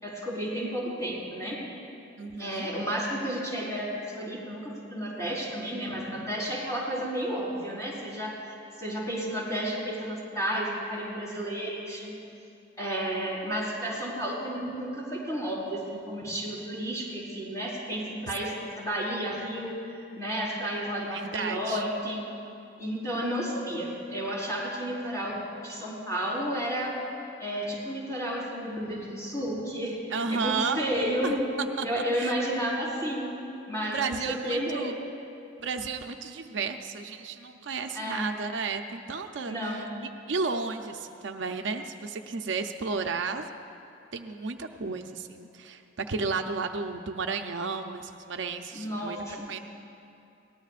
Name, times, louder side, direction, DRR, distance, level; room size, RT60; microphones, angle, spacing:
voice 1, 0.0-1.6 2.4-12.2 12.8-22.2 22.8-27.0 27.4-30.0 30.3-31.4 31.8-33.4 33.7-34.9 37.9-38.3 39.5-39.9 48.7-49.5, equal, 20° left, -6 dB, 4.4 m, -32 dB
voice 2, 2.2-2.7 21.1-21.8 30.1-30.8 31.2-31.9 32.1-32.3 33.8-34.9 35.6-39.9 40.3-43.5 44.1-49.6, right 4 dB, 70° right, 6 dB, 0.6 m, -33 dB
22.5 x 18.5 x 2.5 m, 2.7 s
head